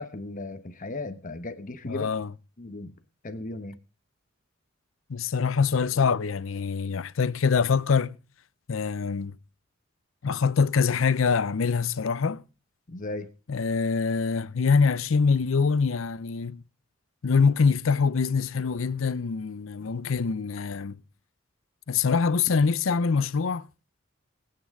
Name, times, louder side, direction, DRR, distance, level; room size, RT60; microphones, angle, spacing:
voice 1, 0.0-2.1 2.6-2.9 3.2-3.8 12.9-13.3, left 2 dB, 40° left, 1.0 m, -36 dB
voice 2, 1.9-2.3 5.1-8.2 8.7-9.3 10.2-12.4 13.5-16.6 17.2-21.0 21.9-23.7, left 5 dB, 85° left, 0.6 m, -24 dB
21.5 x 8.8 x 3.6 m
head